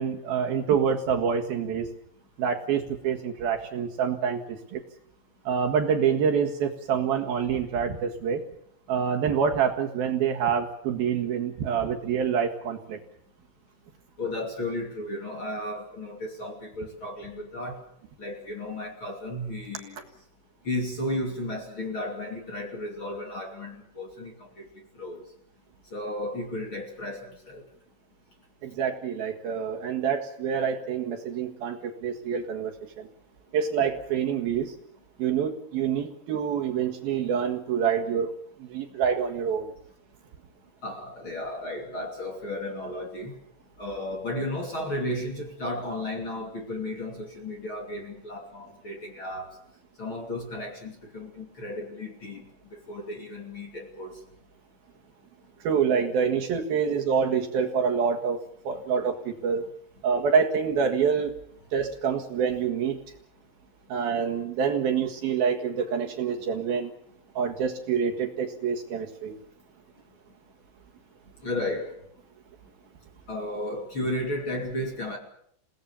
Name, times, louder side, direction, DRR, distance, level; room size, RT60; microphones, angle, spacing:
voice 1, 0.0-1.9 2.4-4.8 5.4-8.4 8.9-13.0 28.6-33.1 33.5-34.7 35.2-38.3 38.6-39.7 55.6-59.7 60.0-61.4 61.7-63.0 63.9-66.9 67.3-69.4, right 7 dB, 60° right, 2 dB, 3.2 m, -26 dB
voice 2, 14.2-17.8 18.2-20.0 20.6-24.6 24.9-25.2 25.9-27.6 40.8-43.4 43.8-49.6 50.0-54.1 71.4-71.9 73.3-75.2, left 1 dB, 30° left, 1 dB, 2.9 m, -34 dB
29.0 x 18.5 x 7.1 m, 0.70 s
omnidirectional pair, 5.3 m